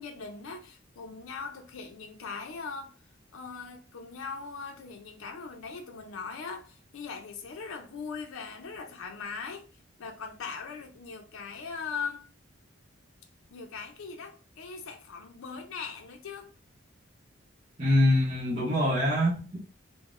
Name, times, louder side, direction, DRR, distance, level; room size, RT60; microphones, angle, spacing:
voice 1, 0.0-2.9 3.3-9.6 10.0-12.3 13.5-16.5, left 5 dB, 85° left, 0.5 m, -40 dB
voice 2, 17.8-19.6, left 1 dB, 35° right, 0.7 m, -24 dB
3.6 x 2.0 x 2.4 m
head